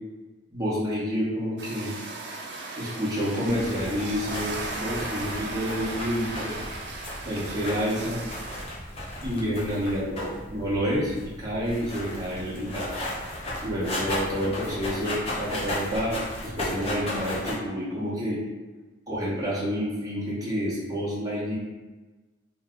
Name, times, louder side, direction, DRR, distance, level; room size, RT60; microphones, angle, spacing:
voice 1, 0.5-1.9 2.8-6.5 7.2-8.2 9.2-11.1 11.4-13.0 13.6-16.1 16.4-18.4 19.1-21.6, equal, 20° right, -7 dB, 0.8 m, -29 dB
sound 1, 1.6-8.7, right 3 dB, 60° right, 0.4 m, -36 dB
sound 2, 3.4-17.5, left 1 dB, 30° left, 0.7 m, -35 dB
2.7 x 2.3 x 3.6 m, 1.2 s
head